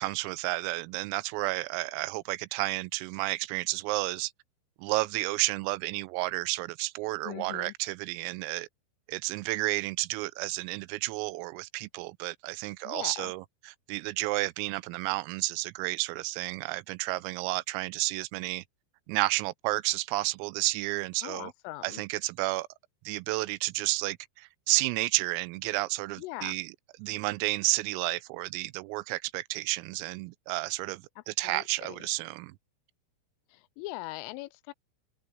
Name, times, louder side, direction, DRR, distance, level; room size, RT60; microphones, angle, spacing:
voice 1, 0.0-4.3 4.8-8.7 9.1-18.6 19.1-21.5 21.8-22.7 23.1-26.7 27.0-32.5, right 21 dB, 90° right, 3.4 m, -31 dB
voice 2, 7.2-7.7 12.8-13.3 21.2-22.0 26.2-26.6 31.4-32.0 33.5-34.7, left 19 dB, 85° left, 3.1 m, -40 dB
omnidirectional pair, 5.9 m